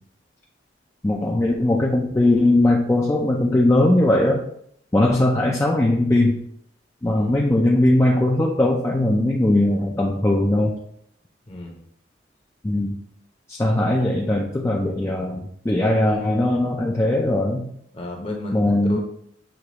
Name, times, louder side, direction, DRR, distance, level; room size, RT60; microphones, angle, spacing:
voice 1, 1.0-4.4 4.9-6.4 7.0-10.7 12.6-13.0 13.5-17.7 18.5-19.0, left 1 dB, 15° left, -2 dB, 0.3 m, -19 dB
voice 2, 7.0-7.4 11.5-11.8 17.9-19.0, left 1 dB, 30° left, 0 dB, 0.7 m, -32 dB
6.3 x 2.3 x 2.9 m, 0.68 s
head